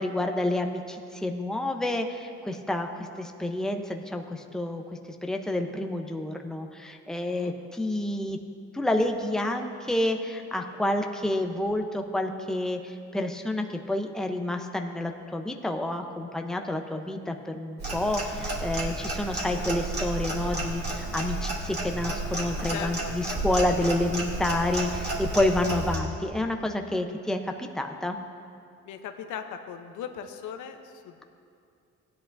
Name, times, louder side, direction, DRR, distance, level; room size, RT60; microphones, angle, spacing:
voice 1, 0.0-4.8 5.2-8.4 8.7-28.2, left 1 dB, ahead, 4 dB, 0.7 m, -29 dB
voice 2, 7.2-7.5 22.7-23.1 28.9-31.2, left 8 dB, 85° left, 6 dB, 0.8 m, -38 dB
Clock, 17.8-26.0, right 2 dB, 35° right, 2.4 m, -32 dB
16.5 x 10.5 x 2.6 m, 2.4 s
cardioid pair, 90°, 30 cm